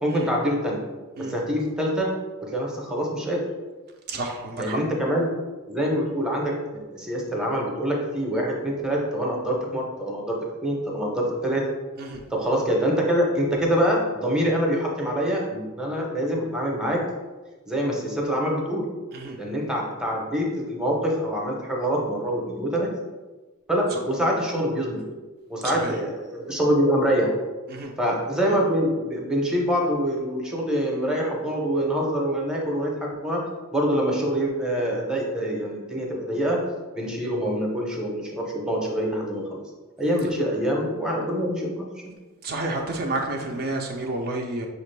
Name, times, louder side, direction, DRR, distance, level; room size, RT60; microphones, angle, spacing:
voice 1, 0.0-0.8 1.2-2.1 2.4-3.4 4.6-5.3 5.7-11.6 12.3-17.0 17.7-18.9 19.4-22.9 23.7-25.0 25.5-27.3 28.0-33.4 33.7-36.6 36.9-39.6 40.0-41.9 43.4-43.5, equal, 5° right, -1 dB, 0.6 m, -25 dB
voice 2, 4.1-4.8 12.0-12.2 19.1-19.4 23.9-24.0 25.6-25.9 27.7-27.9 42.4-44.7, right 2 dB, 45° right, 2 dB, 0.4 m, -30 dB
5.8 x 2.5 x 3.2 m, 1.3 s
head